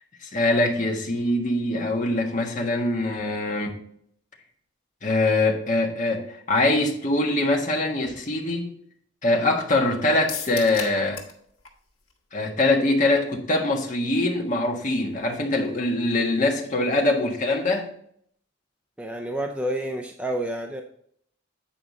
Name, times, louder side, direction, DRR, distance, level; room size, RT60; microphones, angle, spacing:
voice 1, 0.2-3.7 5.0-8.7 9.2-11.2 12.3-17.9, left 2 dB, 40° left, 1.4 m, -23 dB
sound 1, 10.3-11.4 11.7-11.8 12.1-12.2, left 6 dB, 90° left, 1.5 m, -34 dB
voice 2, 19.0-20.8, right 1 dB, 5° right, 0.5 m, -29 dB
8.8 x 4.9 x 3.8 m
head